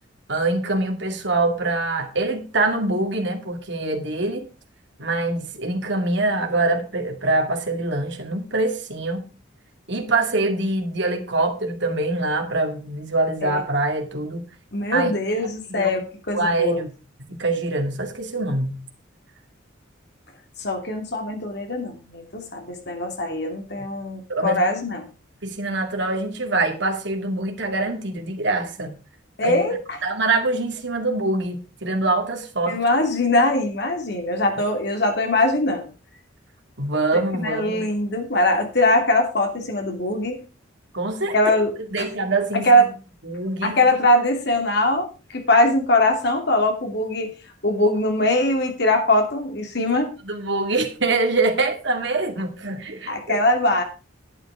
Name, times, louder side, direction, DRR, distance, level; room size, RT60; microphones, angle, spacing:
voice 1, 0.3-4.5 5.0-9.3 9.9-14.4 14.9-15.1 15.7-16.0 16.3-16.9 17.4-18.8 24.3-24.6 25.4-28.9 29.4-29.6 30.0-32.8 36.8-37.8 40.9-41.6 41.9-42.7 43.2-43.8 50.2-53.4, right 2 dB, 60° right, 2.2 m, -24 dB
voice 2, 14.7-16.8 20.6-25.1 29.4-30.0 32.7-35.9 37.1-40.4 41.3-42.1 42.6-42.8 43.6-45.1 45.3-47.3 47.6-50.1 53.1-53.8, left 1 dB, 55° left, 2.8 m, -21 dB
11.0 x 9.1 x 4.8 m
head